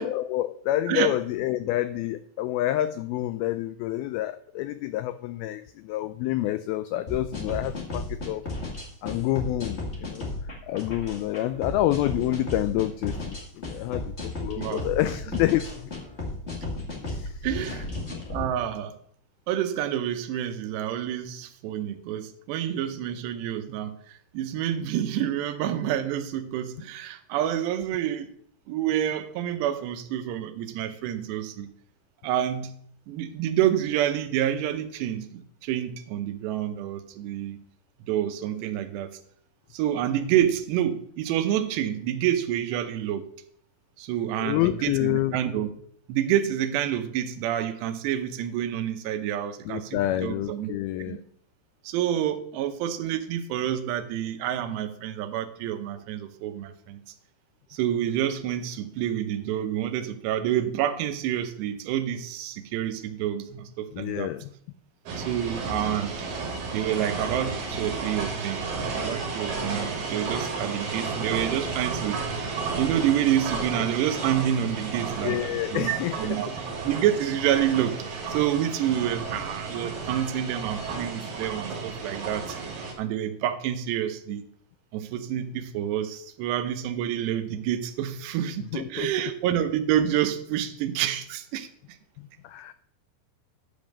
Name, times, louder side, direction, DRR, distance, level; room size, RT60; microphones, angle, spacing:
voice 1, 0.0-8.4 9.0-10.3 10.6-15.9 17.0-17.8 44.3-45.4 49.7-51.2 63.9-64.5 75.2-76.4 88.7-89.1 92.2-92.7, left 14 dB, 90° left, 11 dB, 2.1 m, -28 dB
sound 1, 7.1-18.5, left 2 dB, 30° left, 1.2 m, -34 dB
voice 2, 17.4-17.9 18.3-19.0 19.5-24.0 24.3-28.3 28.7-31.7 32.2-32.7 33.1-37.6 38.1-39.2 39.7-43.3 44.0-45.7 46.1-50.7 51.0-51.2 51.8-57.0 57.7-64.3 65.2-66.1 66.7-68.7 69.0-72.2 72.8-76.5 76.8-82.6 83.0-84.4 84.9-91.7, right 11 dB, 85° right, 9 dB, 3.0 m, -28 dB
sound 2, 65.1-82.9, right 4 dB, 60° right, 3.4 m, -32 dB
11.0 x 5.3 x 6.5 m, 0.63 s
omnidirectional pair, 4.8 m